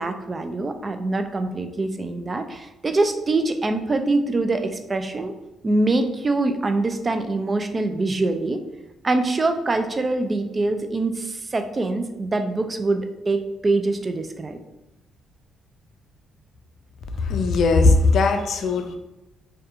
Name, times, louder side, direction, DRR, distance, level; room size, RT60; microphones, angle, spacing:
voice 1, 0.0-5.3 5.6-8.6 9.0-14.6, right 2 dB, 30° right, 7 dB, 0.3 m, -24 dB
voice 2, 17.3-19.0, left 3 dB, 65° left, 6 dB, 0.3 m, -18 dB
2.7 x 2.2 x 2.4 m, 0.96 s
cardioid pair, 90°, 0 cm